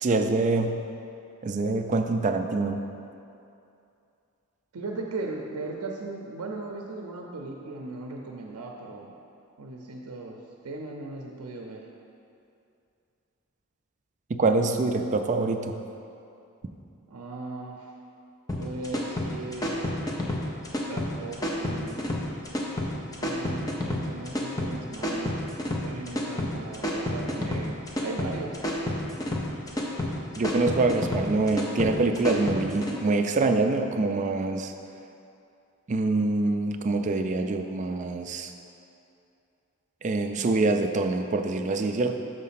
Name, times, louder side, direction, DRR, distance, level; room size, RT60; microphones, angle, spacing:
voice 1, 0.0-0.8 1.4-2.8 14.3-15.7 30.4-34.7 35.9-38.5 40.0-42.2, right 3 dB, 35° right, 6 dB, 0.3 m, -25 dB
voice 2, 4.7-9.1 9.6-10.4 10.6-11.8 17.1-17.9 18.6-19.9 20.9-22.0 23.2-25.5 25.8-28.6, right 3 dB, 85° right, 0 dB, 0.6 m, -38 dB
sound 1, 18.5-32.9, left 1 dB, 15° left, 0.7 m, -30 dB
6.5 x 4.2 x 5.7 m, 2.6 s
head